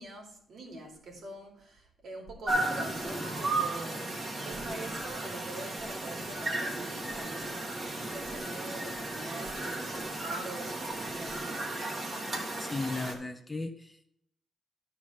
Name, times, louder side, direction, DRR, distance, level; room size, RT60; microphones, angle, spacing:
voice 1, 0.0-4.1 4.4-11.6, right 2 dB, 65° right, 0 dB, 2.9 m, -44 dB
sound 1, 2.5-13.1, right 2 dB, 35° right, 2.0 m, -35 dB
voice 2, 12.6-14.1, left 3 dB, 15° left, 7 dB, 0.8 m, -36 dB
11.0 x 4.7 x 5.6 m, 0.71 s
cardioid pair, 100°, 0 cm